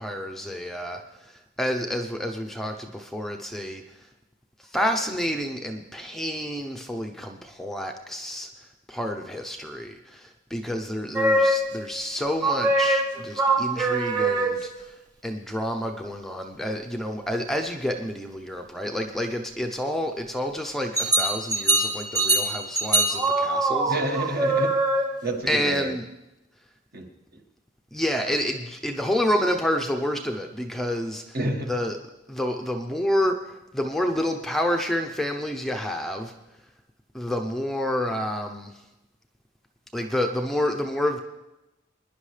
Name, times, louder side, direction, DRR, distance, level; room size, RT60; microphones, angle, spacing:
voice 1, 0.0-4.0 4.6-8.5 8.9-14.9 15.2-23.9 25.5-26.1 27.9-31.4 31.7-32.0 32.3-36.3 37.1-38.8 39.9-41.2, equal, ahead, 3 dB, 0.6 m, -29 dB
sound 1, 11.1-11.9 12.4-14.8 20.9-25.4, right 2 dB, 20° right, 1.2 m, -23 dB
voice 2, 23.8-24.8 25.2-25.9 26.9-27.0 31.3-31.7, right 1 dB, 50° right, 2 dB, 1.5 m, -28 dB
23.0 x 10.5 x 3.3 m, 0.96 s
head